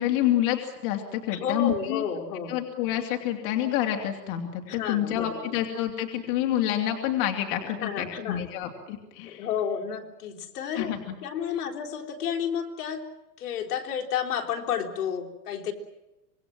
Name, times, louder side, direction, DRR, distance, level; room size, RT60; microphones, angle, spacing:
voice 1, 0.0-2.0 2.5-9.5 10.7-11.2, left 12 dB, 40° left, 3 dB, 2.9 m, -28 dB
voice 2, 1.3-2.6 4.7-5.4 7.6-8.4 9.2-10.9 11.2-13.1 13.4-15.7, left 7 dB, 65° left, 4 dB, 3.9 m, -31 dB
26.0 x 21.5 x 7.6 m, 1.0 s
supercardioid pair, 160°, 50 cm